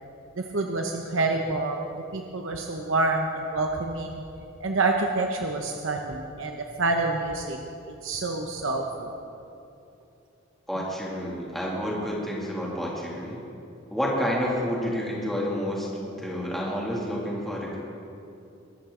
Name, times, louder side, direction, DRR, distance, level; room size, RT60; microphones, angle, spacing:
voice 1, 0.4-1.9 2.1-4.2 4.6-7.6 8.0-9.1, right 3 dB, 80° right, 2 dB, 1.0 m, -27 dB
voice 2, 10.7-13.4 13.9-17.8, equal, ahead, -5 dB, 2.5 m, -29 dB
23.0 x 12.5 x 3.9 m, 2.7 s
head